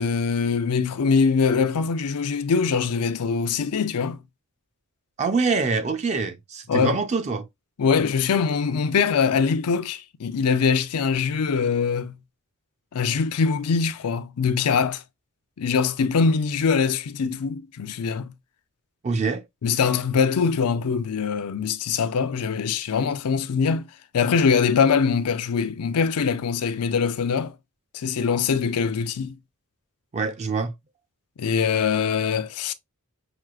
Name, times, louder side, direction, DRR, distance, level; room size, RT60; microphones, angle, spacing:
voice 1, 0.0-4.2 6.7-7.0 7.8-12.2 12.9-15.0 15.6-18.3 19.6-23.9 24.1-27.5 27.9-29.4 31.4-32.7, left 5 dB, 85° left, 0.5 m, -23 dB
voice 2, 5.2-7.4 19.0-19.4 30.1-30.7, right 4 dB, 30° right, 0.4 m, -25 dB
5.9 x 2.4 x 2.3 m
head